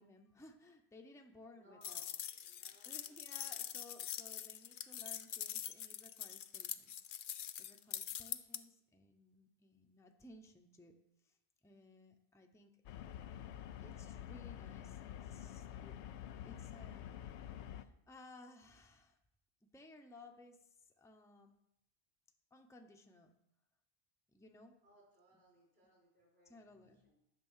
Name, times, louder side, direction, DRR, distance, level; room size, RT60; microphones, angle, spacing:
voice 1, 0.0-2.0 2.5-6.9 7.6-10.9 11.2-11.4 11.6-12.7 13.0-13.3 13.8-16.0 16.4-17.0 17.6-19.2 19.7-21.6 22.5-23.3 24.3-24.8 26.4-27.1, left 2 dB, 5° left, 4 dB, 0.7 m, -59 dB
voice 2, 1.6-3.8 24.8-27.2, right 1 dB, 65° right, -4 dB, 5.3 m, -68 dB
sound 1, 1.8-8.6, left 10 dB, 60° left, 0.6 m, -44 dB
sound 2, 12.9-17.8, left 10 dB, 90° left, 0.9 m, -48 dB
11.0 x 6.8 x 5.6 m, 0.83 s
omnidirectional pair, 1.1 m